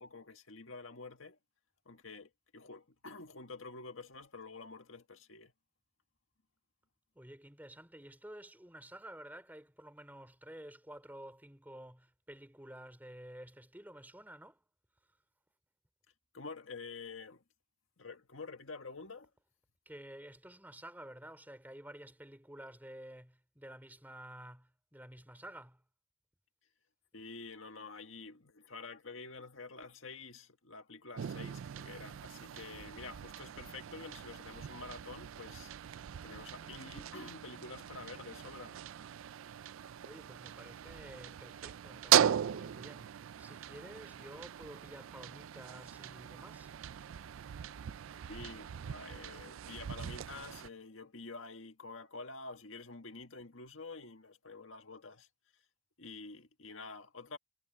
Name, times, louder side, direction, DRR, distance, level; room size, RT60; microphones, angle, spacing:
voice 1, 0.0-1.4 1.9-5.5 16.3-17.4 18.0-19.3 27.1-36.0 36.2-38.8 48.1-55.3 56.0-57.4, left 3 dB, 75° left, 1.8 m, -48 dB
voice 2, 7.1-14.6 19.8-25.8 40.0-46.7, right 1 dB, 10° right, 3.0 m, -51 dB
sound 1, 31.2-50.7, right 10 dB, 75° right, 0.4 m, -38 dB
head